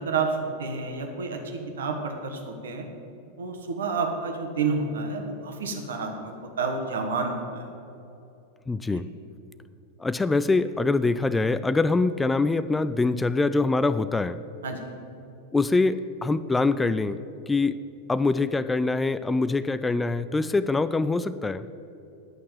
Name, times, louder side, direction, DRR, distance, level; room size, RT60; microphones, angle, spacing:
voice 1, 0.0-2.8 3.4-7.7 14.6-14.9, right 4 dB, 65° right, 3 dB, 1.5 m, -30 dB
voice 2, 8.7-9.0 10.0-14.4 15.5-17.2 17.5-17.8 18.1-21.7, left 3 dB, 10° left, 14 dB, 0.3 m, -24 dB
11.0 x 6.3 x 7.5 m, 2.9 s
figure-of-eight pair, 90°, 0 cm